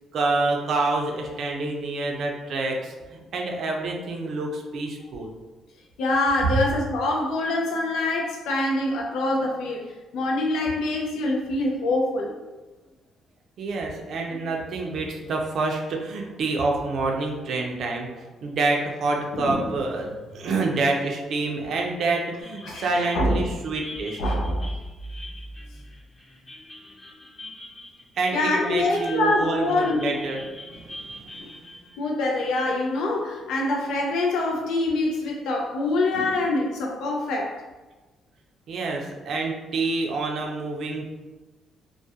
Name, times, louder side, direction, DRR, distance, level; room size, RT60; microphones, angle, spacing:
voice 1, 0.1-5.3 13.6-18.1 18.4-24.2 28.2-31.4 38.7-41.1, right 3 dB, 65° right, 1 dB, 0.4 m, -27 dB
voice 2, 6.0-9.8 10.1-12.3 19.3-19.7 22.6-23.4 24.2-24.7 28.3-30.2 31.4-31.5 32.0-37.6, left 2 dB, 85° left, -1 dB, 0.3 m, -25 dB
sound 1, 22.4-34.1, left 1 dB, 35° left, 0.8 m, -44 dB
2.2 x 2.1 x 2.7 m, 1.2 s
cardioid pair, 90°, 0 cm